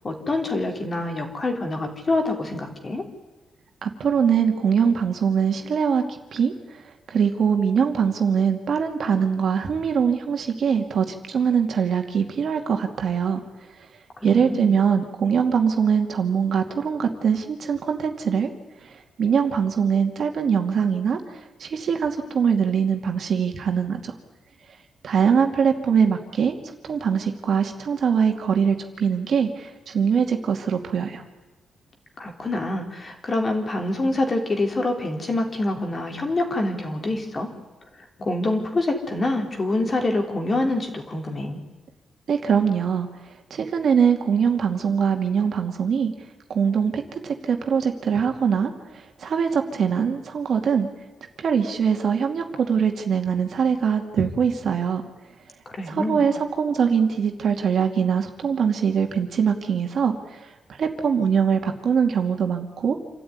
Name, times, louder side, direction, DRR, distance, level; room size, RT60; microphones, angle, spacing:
voice 1, 0.0-3.0 14.2-14.7 32.2-37.5 38.0-41.6 55.7-56.3, left 2 dB, 30° left, 4 dB, 3.4 m, -26 dB
voice 2, 3.8-6.8 7.1-13.4 14.2-18.5 18.8-21.2 21.6-24.1 25.0-26.6 26.8-31.2 42.3-43.1 43.5-46.1 46.5-50.9 51.4-55.0 55.9-62.9, right 6 dB, 55° right, 4 dB, 2.5 m, -22 dB
27.5 x 13.0 x 9.7 m, 1.2 s
cardioid pair, 135°, 0 cm